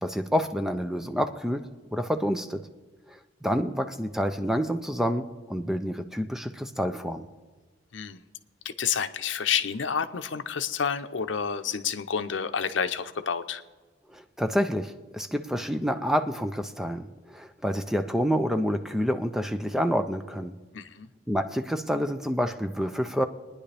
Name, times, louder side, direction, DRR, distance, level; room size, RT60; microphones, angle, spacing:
voice 1, 0.0-2.6 3.1-7.3 14.1-20.6 21.3-23.2, equal, ahead, 8 dB, 0.5 m, -28 dB
voice 2, 8.6-13.6 20.7-21.1, left 7 dB, 75° left, 9 dB, 0.7 m, -29 dB
25.5 x 10.0 x 3.4 m, 1.3 s
head